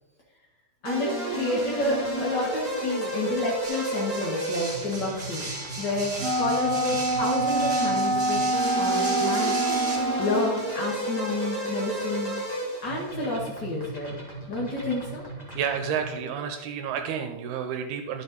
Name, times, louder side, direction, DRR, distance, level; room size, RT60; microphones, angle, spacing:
voice 1, 0.8-5.5 5.8-9.8 10.2-12.3 12.8-14.2 14.5-15.2, left 2 dB, 80° left, -4 dB, 0.9 m, -29 dB
sound 1, 0.8-16.2, right 2 dB, 35° left, 0.6 m, -33 dB
sound 2, 3.6-10.0, right 2 dB, 25° right, 1.9 m, -36 dB
Wind instrument woodwind instrument, 6.2-10.5, right 1 dB, 55° right, 0.6 m, -26 dB
voice 2, 15.5-18.2, right 7 dB, 80° right, 5 dB, 2.6 m, -30 dB
11.5 x 7.4 x 4.0 m, 1.1 s
omnidirectional pair, 4.6 m